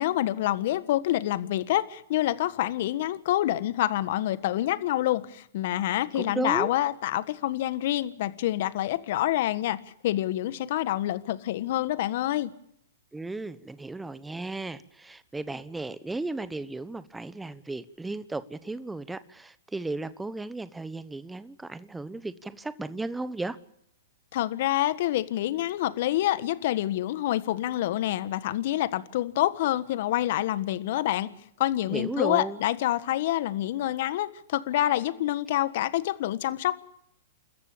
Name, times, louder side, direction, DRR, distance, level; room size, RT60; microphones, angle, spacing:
voice 1, 0.0-9.8 10.0-12.5 24.3-31.3 31.6-36.8, left 14 dB, 55° left, 14 dB, 1.5 m, -27 dB
voice 2, 6.1-6.7 13.1-23.6 31.9-32.6, right 2 dB, 5° right, 14 dB, 1.1 m, -35 dB
29.5 x 14.0 x 8.7 m, 0.72 s
hypercardioid pair, 120°, 0 cm